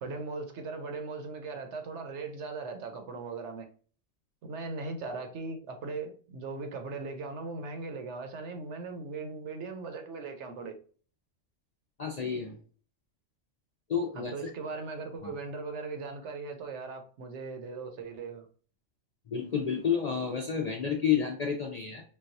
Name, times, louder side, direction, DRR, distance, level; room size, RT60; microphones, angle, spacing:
voice 1, 0.0-3.7 4.4-10.8 14.1-18.5, right 4 dB, 65° right, 1.0 m, -39 dB
voice 2, 12.0-12.6 13.9-14.3 19.3-22.0, left 7 dB, 60° left, 0.4 m, -30 dB
3.9 x 2.3 x 2.6 m
omnidirectional pair, 1.4 m